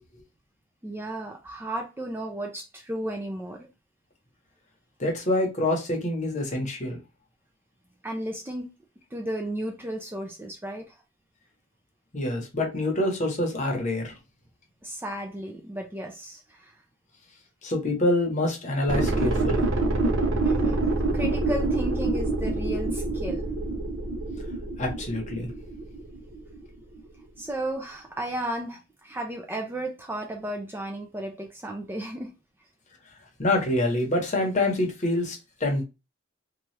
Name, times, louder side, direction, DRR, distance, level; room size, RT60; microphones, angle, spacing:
voice 1, 0.8-3.7 8.0-8.7 9.1-10.9 14.8-16.7 20.4-20.9 21.1-23.5 27.4-32.3, right 1 dB, 10° right, 0.4 m, -33 dB
voice 2, 5.0-7.0 12.1-14.1 17.6-19.6 24.8-25.5 33.4-35.8, left 1 dB, 35° left, 0.9 m, -26 dB
sound 1, 18.9-26.7 27.0-27.1, right 2 dB, 70° right, 0.6 m, -27 dB
2.8 x 2.3 x 3.1 m
head